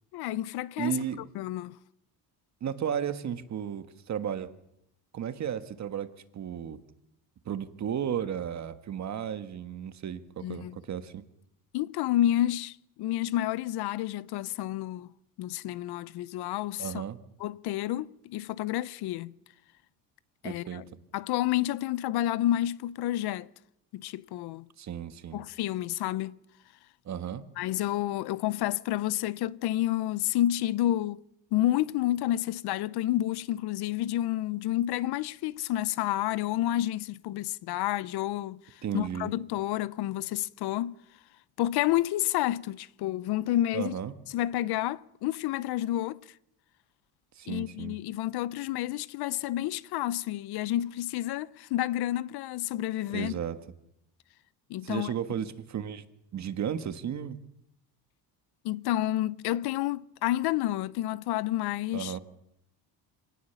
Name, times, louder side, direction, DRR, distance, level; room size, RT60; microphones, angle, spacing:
voice 1, 0.1-0.9 1.3-1.8 10.4-10.8 11.7-15.1 15.4-17.0 17.4-19.3 20.4-20.8 21.1-23.5 23.9-24.7 25.3-26.4 27.6-31.2 31.5-38.6 38.9-41.0 41.6-43.9 44.3-46.2 47.5-53.3 54.7-55.1 58.6-62.2, left 14 dB, 70° left, 0.7 m, -29 dB
voice 2, 0.8-1.3 2.6-4.5 5.1-6.8 7.4-11.2 16.8-17.2 20.4-20.8 24.8-25.4 27.0-27.5 38.8-39.3 43.7-44.1 47.3-48.0 53.1-53.6 54.8-56.0 56.3-57.4 61.9-62.2, right 8 dB, 40° right, 1.5 m, -34 dB
25.0 x 18.5 x 7.0 m
cardioid pair, 130°, 41 cm